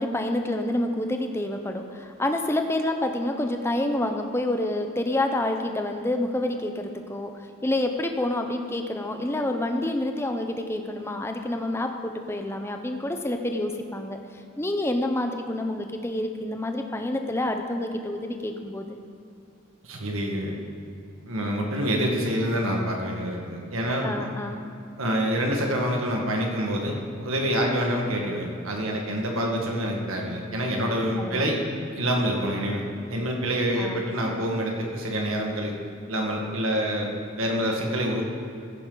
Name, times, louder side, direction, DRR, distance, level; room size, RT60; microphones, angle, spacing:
voice 1, 0.0-14.2 14.6-19.0 24.0-24.6 31.2-31.5 33.8-34.2, left 1 dB, 10° left, 5 dB, 0.7 m, -28 dB
voice 2, 19.8-20.5 21.3-24.3 25.0-31.6 31.9-32.8 33.1-35.7 36.1-38.2, equal, 80° right, 0 dB, 1.7 m, -27 dB
14.5 x 10.5 x 3.9 m, 2.5 s
head